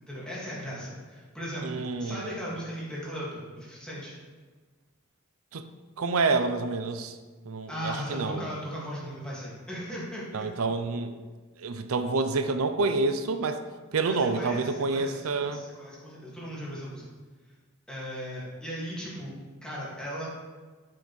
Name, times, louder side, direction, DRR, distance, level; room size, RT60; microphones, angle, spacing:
voice 1, 0.0-4.1 7.7-10.5 14.0-17.1 17.9-19.3 19.6-20.3, equal, 5° left, -7 dB, 2.0 m, -37 dB
voice 2, 1.6-2.3 5.5-5.6 6.0-7.2 7.5-8.5 10.3-11.2 11.6-13.6 13.9-15.6, right 3 dB, 90° right, 9 dB, 0.5 m, -28 dB
8.5 x 6.0 x 3.2 m, 1.4 s
head